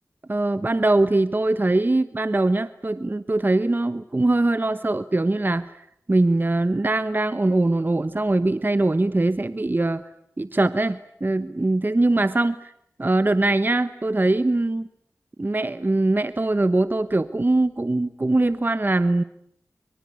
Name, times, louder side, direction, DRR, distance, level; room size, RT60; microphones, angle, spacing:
voice 1, 0.3-5.7 6.1-10.0 10.4-12.7 13.0-14.9 15.4-19.2, right 2 dB, 35° right, 13 dB, 1.1 m, -22 dB
24.0 x 24.0 x 9.8 m, 0.72 s
cardioid pair, 45°, 6 cm